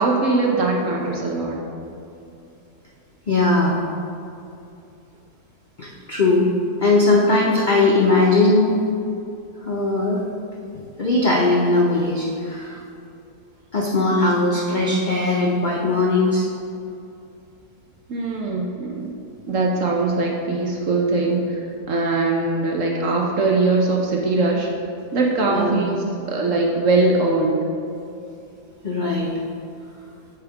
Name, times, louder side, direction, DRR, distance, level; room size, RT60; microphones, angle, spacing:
voice 1, 0.0-1.6 18.1-19.1 19.5-24.7 25.1-27.6, right 3 dB, 60° right, -1 dB, 0.9 m, -21 dB
voice 2, 3.3-3.8 5.8-6.5 6.8-8.7 9.6-10.2 10.7-12.8 13.7-16.5 25.5-25.8 28.8-29.3, left 2 dB, 55° left, -3 dB, 0.5 m, -19 dB
8.4 x 3.6 x 4.7 m, 2.7 s
omnidirectional pair, 1.7 m